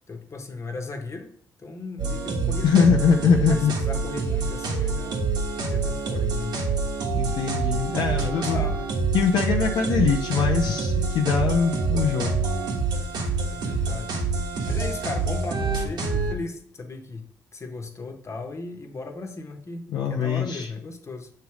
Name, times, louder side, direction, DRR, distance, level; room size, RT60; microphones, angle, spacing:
voice 1, 0.1-1.3 1.6-2.9 3.5-5.2 5.6-6.6 8.1-8.8 13.4-14.1 14.7-17.3 17.5-21.3, left 3 dB, 40° left, 4 dB, 1.2 m, -36 dB
sound 1, 2.0-16.3, right 4 dB, 70° right, 1.4 m, -26 dB
voice 2, 2.6-3.7 7.1-8.6 9.1-12.4 19.9-20.7, left 6 dB, 70° left, 2 dB, 0.6 m, -22 dB
6.7 x 3.2 x 4.9 m, 0.63 s
supercardioid pair, 55°, 8 cm